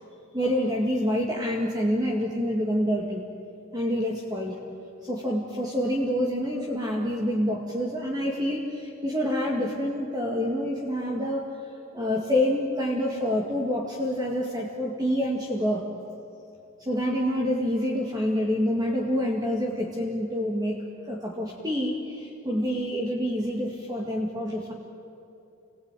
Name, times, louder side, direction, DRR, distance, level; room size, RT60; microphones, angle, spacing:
voice 1, 0.3-3.2 3.7-4.6 5.0-11.5 11.9-15.9 16.8-24.7, equal, 20° right, -1 dB, 2.0 m, -27 dB
27.5 x 20.0 x 9.1 m, 2.8 s
head